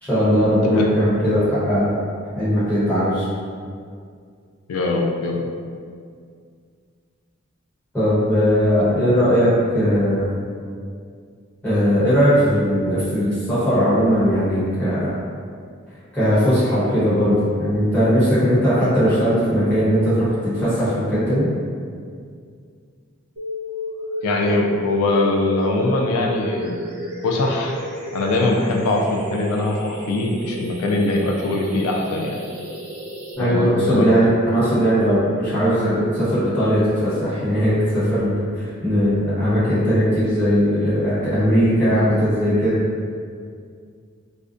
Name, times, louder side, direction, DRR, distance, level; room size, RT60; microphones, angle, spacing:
voice 1, 0.0-2.0 2.3-3.2 7.9-10.3 11.6-15.1 16.1-21.5 33.4-42.8, equal, 5° left, -14 dB, 0.9 m, -19 dB
voice 2, 0.6-0.9 4.7-5.4 24.2-26.8 27.2-27.7 28.1-32.4 33.4-34.1, left 2 dB, 90° left, 4 dB, 0.3 m, -21 dB
sound 1, 23.4-33.4, equal, 90° right, 0.6 m, -32 dB
2.4 x 2.1 x 2.5 m, 2.2 s
head